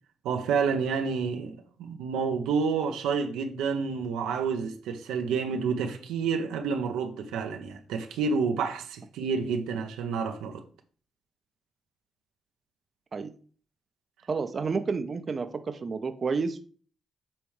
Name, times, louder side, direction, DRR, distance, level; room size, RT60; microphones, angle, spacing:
voice 1, 0.2-10.6, right 5 dB, 85° right, 0.7 m, -29 dB
voice 2, 14.3-16.6, right 4 dB, 50° right, 0.6 m, -30 dB
8.6 x 3.4 x 3.2 m
supercardioid pair, 50°, 0 cm